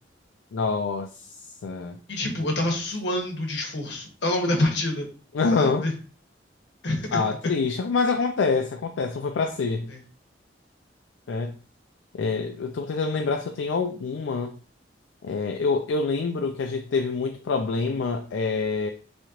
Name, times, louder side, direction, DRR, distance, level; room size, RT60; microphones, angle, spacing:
voice 1, 0.5-1.1 1.6-2.0 5.3-5.8 7.1-9.9 11.3-11.5 12.1-14.5 15.2-18.9, left 4 dB, 80° left, 5 dB, 0.4 m, -26 dB
voice 2, 2.1-5.1 5.5-5.9 6.8-7.2 9.9-10.0, left 1 dB, 65° left, 1 dB, 1.1 m, -26 dB
3.6 x 3.1 x 2.9 m, 0.37 s
head